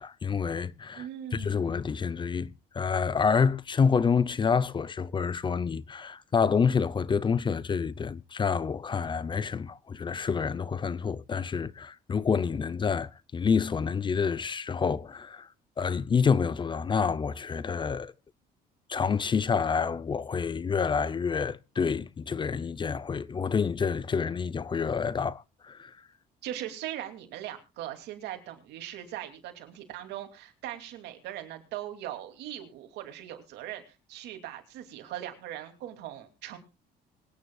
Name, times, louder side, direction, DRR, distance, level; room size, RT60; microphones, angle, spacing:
voice 1, 0.0-1.0 1.3-15.5 15.8-18.1 18.9-25.9, left 6 dB, 30° left, 0.7 m, -28 dB
voice 2, 0.9-1.7 26.4-36.6, right 12 dB, 85° right, 2.9 m, -40 dB
24.5 x 9.6 x 2.4 m
cardioid pair, 110°, 17 cm